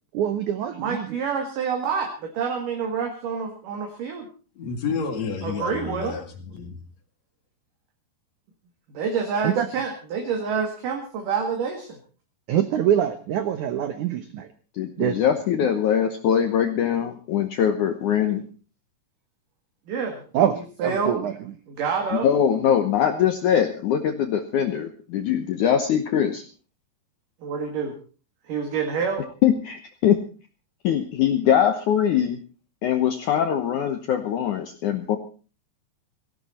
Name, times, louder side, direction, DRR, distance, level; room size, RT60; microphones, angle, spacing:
voice 1, 0.1-1.2 9.4-9.7 12.5-14.5 15.0-15.2 20.3-21.3, right 10 dB, 80° right, 10 dB, 1.7 m, -24 dB
voice 2, 0.7-4.3 5.4-6.2 8.9-12.0 19.9-20.2 20.8-21.2 21.7-22.3 27.4-27.9 28.4-29.3, right 6 dB, 55° right, 3 dB, 3.3 m, -27 dB
voice 3, 4.6-6.8, left 5 dB, 50° left, 6 dB, 2.7 m, -30 dB
voice 4, 14.7-18.4 22.2-26.4 29.4-30.2 30.8-32.4 32.8-35.2, left 9 dB, 70° left, 6 dB, 1.9 m, -22 dB
18.0 x 15.5 x 4.3 m, 0.37 s
omnidirectional pair, 4.9 m